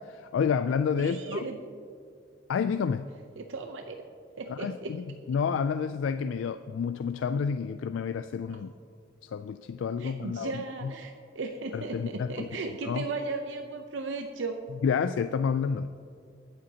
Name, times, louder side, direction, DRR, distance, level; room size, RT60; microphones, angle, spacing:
voice 1, 0.0-1.5 2.5-3.1 4.5-8.7 9.2-10.5 11.7-12.5 12.9-13.0 14.8-15.9, left 6 dB, 90° left, 10 dB, 0.3 m, -29 dB
voice 2, 1.0-1.6 3.4-4.0 4.4-4.9 8.5-8.6 10.0-14.6, right 3 dB, 85° right, 4 dB, 0.7 m, -36 dB
23.0 x 7.7 x 2.8 m, 2.3 s
head